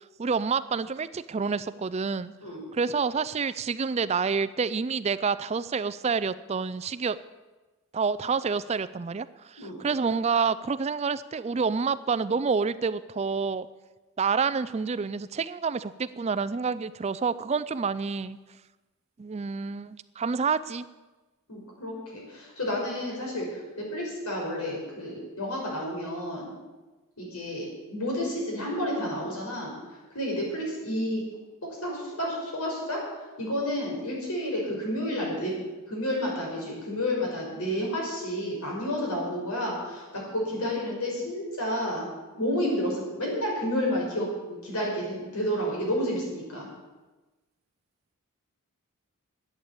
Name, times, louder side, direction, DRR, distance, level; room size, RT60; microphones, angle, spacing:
voice 1, 0.0-2.3 2.7-7.2 7.9-13.7 14.2-18.4 19.2-20.8, right 5 dB, 30° right, 16 dB, 0.4 m, -28 dB
voice 2, 21.5-26.5 27.2-29.7 30.1-31.3 31.8-35.5 35.9-42.1 42.4-46.7, equal, 85° left, -2 dB, 5.5 m, -30 dB
12.0 x 8.8 x 8.4 m, 1.2 s
head